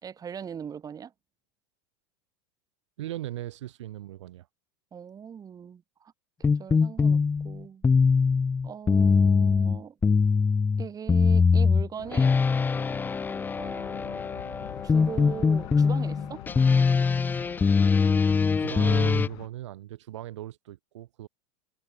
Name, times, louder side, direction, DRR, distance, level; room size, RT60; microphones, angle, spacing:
voice 1, 0.0-1.1 4.9-6.1 6.5-7.8 8.6-10.0 10.8-12.5 13.6-16.4, right 7 dB, 25° right, 3.0 m, -40 dB
voice 2, 3.0-4.5 18.6-21.3, right 14 dB, 80° right, 1.3 m, -37 dB
sound 1, 6.4-19.3, left 5 dB, 10° left, 0.4 m, -22 dB
sound 2, 12.0-19.5, left 26 dB, 65° left, 1.1 m, -44 dB
hypercardioid pair, 115°, 15 cm